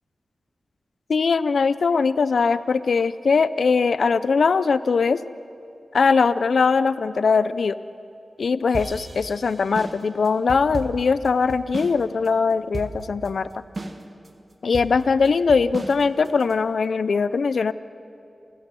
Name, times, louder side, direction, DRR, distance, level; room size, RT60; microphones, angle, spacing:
voice 1, 1.1-5.2 5.9-7.8 8.4-13.5 14.6-17.7, left 5 dB, 80° left, 15 dB, 0.5 m, -21 dB
sound 1, 8.7-12.0 12.3-12.4 12.7-13.3 13.8-14.3 14.7-16.5, right 2 dB, 50° right, 1.7 m, -34 dB
29.5 x 13.5 x 7.6 m, 2.5 s
cardioid pair, 60°, 0 cm